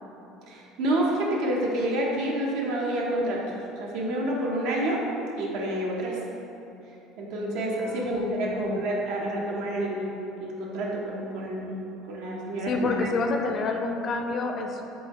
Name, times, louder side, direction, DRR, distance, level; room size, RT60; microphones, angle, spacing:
voice 1, 0.5-5.0 5.4-6.2 7.2-10.0 10.4-11.7 12.1-12.9, right 1 dB, 75° right, -2 dB, 0.7 m, -28 dB
voice 2, 7.8-8.8 12.6-14.8, left 3 dB, 40° left, 3 dB, 0.4 m, -29 dB
4.0 x 3.8 x 3.0 m, 2.9 s
cardioid pair, 125°, 0 cm